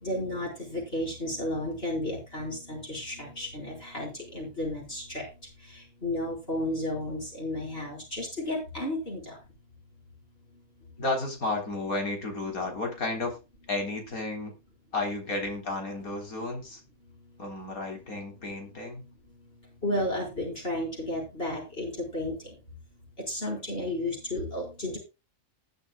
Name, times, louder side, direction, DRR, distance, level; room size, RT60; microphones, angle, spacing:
voice 1, 0.0-5.3 6.0-9.4 19.8-22.4 23.3-25.0, left 1 dB, 40° left, -1 dB, 5.1 m, -32 dB
voice 2, 11.0-13.4 13.7-14.5 14.9-16.8 17.4-19.1, left 2 dB, 75° left, 3 dB, 4.3 m, -32 dB
19.5 x 7.9 x 2.3 m, 0.28 s
omnidirectional pair, 1.5 m